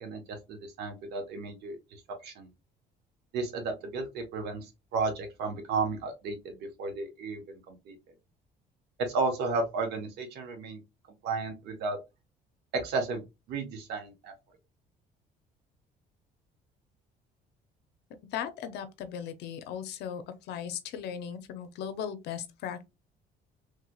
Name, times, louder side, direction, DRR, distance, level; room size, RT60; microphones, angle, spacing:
voice 1, 0.0-2.5 3.3-7.4 7.7-8.0 9.1-10.8 11.2-12.0 12.7-14.3, right 3 dB, 75° right, 1.1 m, -33 dB
voice 2, 18.3-22.8, left 8 dB, 80° left, 0.6 m, -37 dB
3.2 x 2.9 x 2.3 m
cardioid pair, 110°, 17 cm